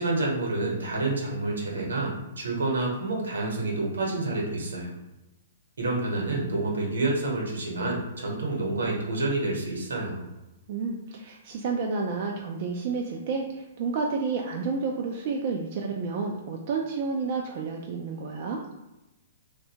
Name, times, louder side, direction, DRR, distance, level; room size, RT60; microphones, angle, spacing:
voice 1, 0.0-4.9 5.8-10.3, right 2 dB, 80° right, -1 dB, 0.9 m, -28 dB
voice 2, 10.7-18.6, right 4 dB, 50° right, 0 dB, 0.3 m, -30 dB
2.6 x 2.2 x 2.8 m, 1.0 s
hypercardioid pair, 125°, 0 cm